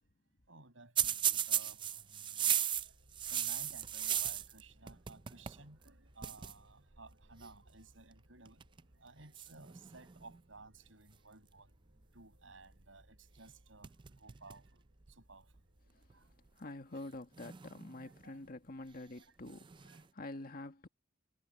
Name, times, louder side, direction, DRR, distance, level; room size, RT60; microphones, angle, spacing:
voice 1, 0.5-3.0 3.3-11.7 12.1-14.8 15.1-16.3 16.9-17.0 18.0-18.4 18.8-18.9 19.2-19.3 19.8-20.0, right 3 dB, 80° right, 7.8 m, -57 dB
sound 1, 1.0-4.6 4.9-5.6 5.9-6.0 6.2-6.5 7.4-7.7 8.4-8.8 9.3-10.4 13.4-13.5 13.8-14.7 15.1-15.2 16.1-16.2 17.3-18.2 19.5-20.0, right 10 dB, 25° right, 0.4 m, -36 dB
sound 2, 2.7-16.6, equal, 60° right, 3.4 m, -66 dB
voice 2, 16.6-20.9, left 2 dB, 50° left, 1.8 m, -47 dB
head